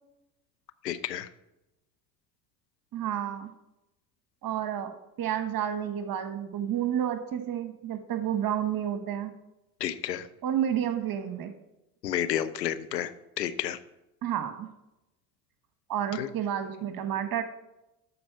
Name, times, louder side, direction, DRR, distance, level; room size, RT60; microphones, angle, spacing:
voice 1, 0.8-1.3 9.8-10.3 12.0-13.8 16.1-16.3, left 10 dB, 85° left, 12 dB, 0.7 m, -31 dB
voice 2, 2.9-3.5 4.4-9.3 10.4-11.5 14.2-14.7 15.9-17.4, right 10 dB, 45° right, 9 dB, 1.3 m, -30 dB
12.5 x 4.2 x 5.7 m, 0.93 s
figure-of-eight pair, 60°, 48 cm